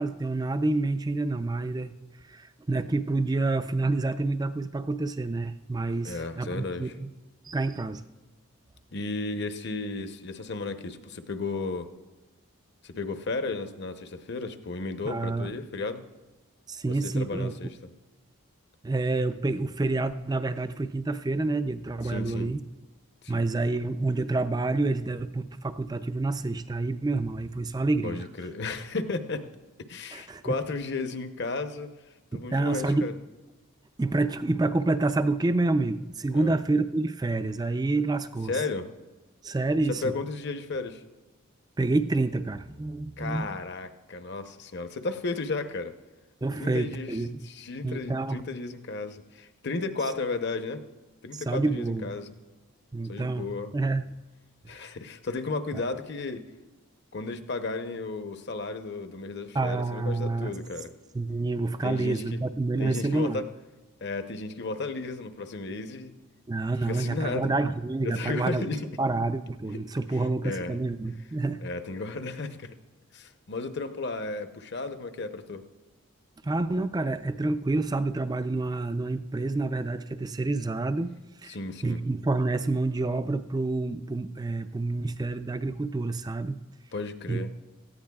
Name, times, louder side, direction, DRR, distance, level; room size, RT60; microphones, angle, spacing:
voice 1, 0.0-2.0 2.3-7.1 7.4-8.0 15.0-15.5 16.7-17.6 18.8-22.6 23.3-28.3 30.1-30.5 32.3-33.1 34.0-38.6 39.4-40.1 41.8-43.5 46.4-47.4 47.8-48.4 51.3-52.1 52.9-53.4 53.7-54.1 54.7-54.8 59.5-60.5 61.1-63.5 66.5-68.7 69.0-71.6 76.4-81.1 81.4-81.6 81.8-86.6 87.3-87.5, right 2 dB, 20° right, 11 dB, 0.3 m, -28 dB
voice 2, 6.0-6.9 8.9-11.9 12.8-16.0 16.9-17.7 22.0-22.5 23.2-23.5 28.0-29.5 29.9-31.9 32.3-33.2 36.3-36.5 38.5-38.9 39.9-41.0 43.2-45.9 46.6-47.2 47.4-50.8 51.2-52.3 53.1-53.7 54.6-56.4 57.1-60.9 61.8-62.4 62.8-63.5 64.0-66.1 66.8-67.5 68.0-68.9 69.7-69.8 70.4-70.8 71.6-72.7 73.1-75.6 81.5-82.0 86.9-87.5, left 3 dB, 50° left, 8 dB, 0.7 m, -34 dB
17.5 x 14.0 x 2.3 m, 1.2 s
head